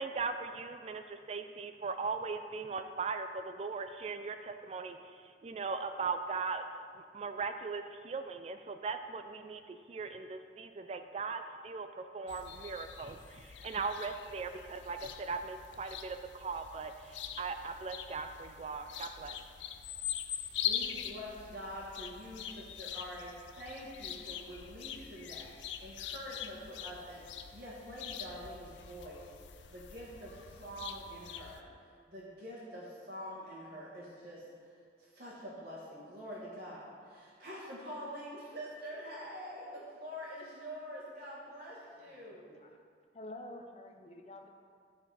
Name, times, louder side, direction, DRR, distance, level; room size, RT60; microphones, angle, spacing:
voice 1, 0.0-6.6 6.9-19.4, right 4 dB, 35° right, 8 dB, 0.3 m, -39 dB
sound 1, 12.3-31.6, left 9 dB, 85° left, 0.5 m, -43 dB
voice 2, 20.6-29.2 29.7-31.7 32.1-34.4 35.1-42.5, equal, 50° right, -8 dB, 1.6 m, -46 dB
voice 3, 43.1-44.5, left 1 dB, 35° left, 3 dB, 0.7 m, -48 dB
12.0 x 4.3 x 4.7 m, 2.1 s
head